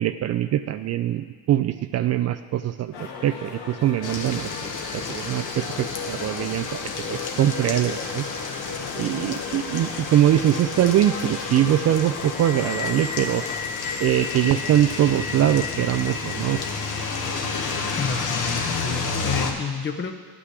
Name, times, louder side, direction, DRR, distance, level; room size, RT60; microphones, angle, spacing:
voice 1, 0.0-8.2 8.9-13.4 14.0-16.6, right 12 dB, 45° right, 11 dB, 0.4 m, -23 dB
sound 1, 2.9-13.6, left 4 dB, 85° left, 1.5 m, -38 dB
sound 2, 4.0-19.5, left 5 dB, 50° left, 1.3 m, -30 dB
voice 2, 18.0-20.1, left 5 dB, 30° left, 7 dB, 0.9 m, -29 dB
9.8 x 6.1 x 8.0 m, 1.5 s
supercardioid pair, 95°, 39 cm